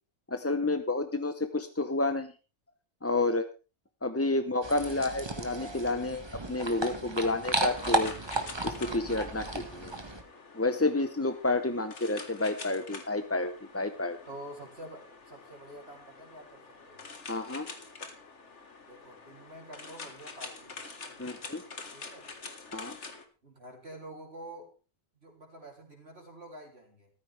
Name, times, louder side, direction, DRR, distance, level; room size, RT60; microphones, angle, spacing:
voice 1, 0.3-2.3 3.0-3.5 4.0-6.2 6.5-8.1 8.6-9.9 10.5-14.2 17.3-17.7 21.2-21.6 22.7-23.0, left 2 dB, 15° left, 9 dB, 0.5 m, -30 dB
sound 1, 4.6-10.2, right 2 dB, 15° right, 1.5 m, -34 dB
sound 2, 7.4-23.2, left 4 dB, 50° left, 2.0 m, -47 dB
voice 2, 14.3-17.1 18.8-20.8 21.1-21.4 21.9-22.3 23.4-24.7 25.2-27.1, right 1 dB, 40° right, 1 dB, 3.5 m, -48 dB
14.5 x 13.5 x 3.4 m, 0.33 s
omnidirectional pair, 1.6 m